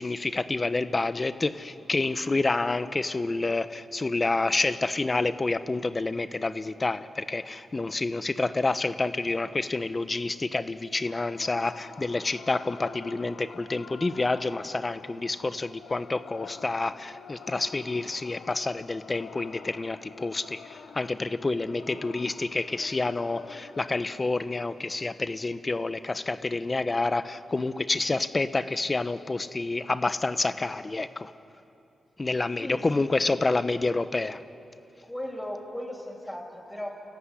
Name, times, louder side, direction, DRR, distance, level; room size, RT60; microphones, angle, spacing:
voice 1, 0.0-31.3 32.2-34.4, left 3 dB, 35° left, 12 dB, 1.1 m, -28 dB
Hell screams, 11.0-26.0, left 7 dB, 85° left, 1.0 m, -48 dB
voice 2, 32.6-33.4 35.0-36.9, left 1 dB, 10° left, 0 dB, 6.9 m, -38 dB
29.0 x 14.5 x 9.9 m, 2.8 s
supercardioid pair, 45°, 0 cm